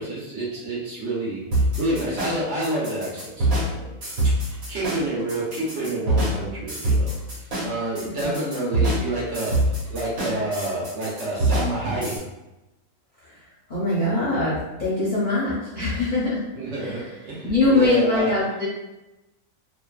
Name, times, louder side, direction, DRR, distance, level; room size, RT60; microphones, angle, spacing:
voice 1, 0.0-3.9 4.4-7.1 7.6-12.2 16.5-18.3, right 1 dB, 60° right, -6 dB, 1.1 m, -29 dB
sound 1, 1.5-12.2, right 1 dB, 80° right, 1.4 m, -25 dB
voice 2, 13.7-16.4 16.8-17.1 17.4-18.7, left 2 dB, 45° left, -9 dB, 0.7 m, -22 dB
2.6 x 2.3 x 2.3 m, 1.0 s
omnidirectional pair, 1.4 m